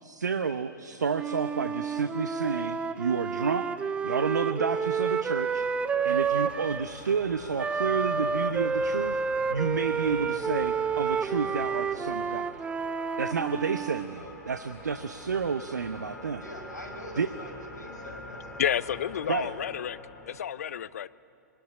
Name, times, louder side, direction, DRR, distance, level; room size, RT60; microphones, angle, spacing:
voice 1, 0.0-3.7 4.0-5.7 6.0-9.2 9.5-12.5 13.2-16.4 17.2-17.3 19.3-19.5, right 5 dB, 65° right, 0.9 m, -30 dB
Wind instrument woodwind instrument, 1.1-6.9 7.6-14.1, right 5 dB, 10° right, 0.6 m, -30 dB
sound 1, 3.7-20.4, left 1 dB, 5° left, 5.8 m, -45 dB
voice 2, 16.4-19.5, left 1 dB, 70° left, 5.2 m, -45 dB
voice 3, 18.6-20.0 20.3-21.1, left 9 dB, 55° left, 0.7 m, -30 dB
24.0 x 20.0 x 9.9 m
figure-of-eight pair, 110°, 10 cm